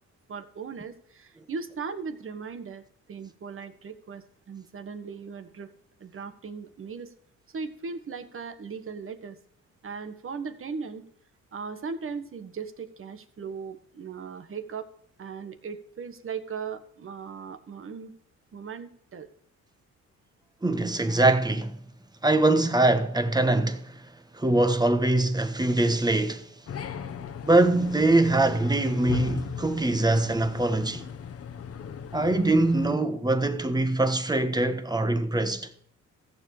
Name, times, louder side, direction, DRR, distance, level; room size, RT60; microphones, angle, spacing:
voice 1, 0.3-2.8 3.1-5.7 6.0-7.1 7.5-9.4 9.8-11.0 11.5-14.9 15.2-18.1 18.5-19.3, right 5 dB, 45° right, 1.5 m, -38 dB
voice 2, 20.6-21.8 22.2-24.0 24.3-26.5 27.4-31.1 32.1-35.7, right 2 dB, 15° right, 1.3 m, -23 dB
sound 1, 26.7-32.9, left 7 dB, 50° left, 1.1 m, -37 dB
15.0 x 7.3 x 4.8 m
cardioid pair, 90°, 30 cm